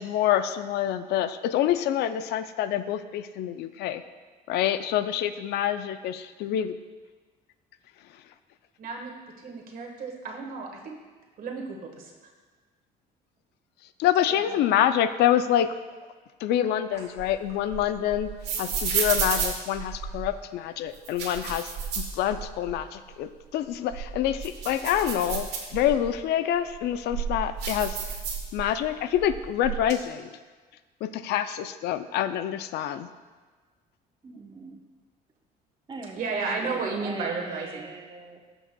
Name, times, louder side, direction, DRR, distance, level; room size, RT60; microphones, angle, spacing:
voice 1, 0.0-4.0 4.5-6.8 14.0-15.7 16.4-18.3 18.6-21.7 22.0-28.0 28.5-30.3 31.0-33.1, left 11 dB, 75° left, 11 dB, 0.4 m, -26 dB
voice 2, 8.8-11.0 11.4-12.1 36.2-37.9, right 4 dB, 55° right, 2 dB, 1.4 m, -33 dB
voice 3, 14.2-14.7 34.2-34.8 35.9-38.4, right 3 dB, 25° right, 4 dB, 0.9 m, -41 dB
sound 1, 16.9-20.4 20.9-22.8 23.1-23.2 23.7-26.1 26.7-28.9 29.1-29.9, right 6 dB, 80° right, 1.6 m, -32 dB
14.5 x 5.9 x 2.3 m, 1.4 s
cardioid pair, 110°, 17 cm